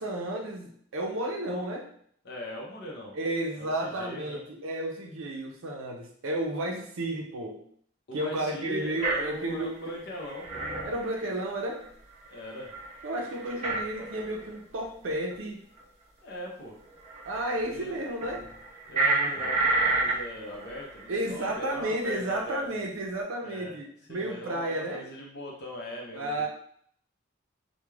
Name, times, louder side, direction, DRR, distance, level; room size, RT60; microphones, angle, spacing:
voice 1, 0.0-1.9 3.1-7.6 8.1-9.7 10.8-11.8 13.0-15.6 17.2-18.5 21.1-25.0 26.1-26.5, right 1 dB, 75° right, 1 dB, 0.5 m, -32 dB
voice 2, 2.2-3.1 3.6-4.4 8.1-10.7 12.3-12.7 16.2-16.7 17.7-18.1 18.9-22.6 23.4-23.7 24.1-26.5, left 1 dB, 55° left, -2 dB, 0.6 m, -40 dB
sound 1, 9.0-9.6 9.9-10.0 10.1-11.9 12.3-12.4 12.6-14.6 14.8-15.3 15.8-15.9 16.9-17.8 18.2-21.1 21.4-21.6 22.6-22.7, right 3 dB, 35° right, 0.6 m, -30 dB
2.3 x 2.1 x 3.1 m, 0.63 s
head